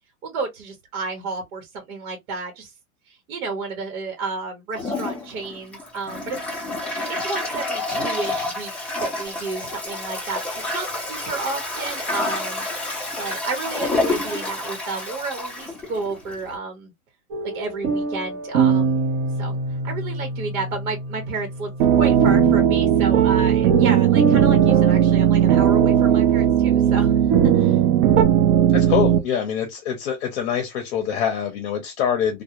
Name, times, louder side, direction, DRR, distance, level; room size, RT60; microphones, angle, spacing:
voice 1, 0.2-2.7 3.1-6.4 7.2-12.6 13.2-16.9 17.4-19.0 19.4-19.6 19.8-27.2 27.5-27.8, right 4 dB, 70° right, 1.0 m, -31 dB
Toilet flush, 4.7-16.5, left 2 dB, 5° left, 0.5 m, -29 dB
sound 1, 17.3-28.2, right 4 dB, 35° right, 0.7 m, -25 dB
sound 2, 21.8-29.2, right 10 dB, 85° right, 0.5 m, -17 dB
voice 2, 28.7-32.4, left 8 dB, 50° left, 0.7 m, -25 dB
2.3 x 2.2 x 2.8 m
hypercardioid pair, 135°, 43 cm